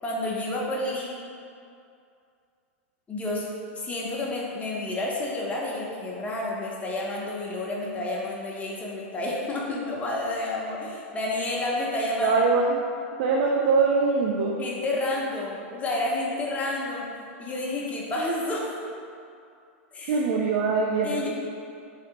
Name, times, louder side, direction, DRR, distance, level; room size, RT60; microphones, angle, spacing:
voice 1, 0.0-1.2 3.1-3.5 3.7-12.4 14.6-17.1 17.4-18.7 19.9-20.2 21.0-21.3, left 2 dB, 20° left, -3 dB, 0.7 m, -30 dB
voice 2, 12.2-12.8 13.2-14.6 20.1-21.3, right 4 dB, 55° right, -1 dB, 0.4 m, -23 dB
3.2 x 2.8 x 3.8 m, 2.4 s
hypercardioid pair, 115°, 7 cm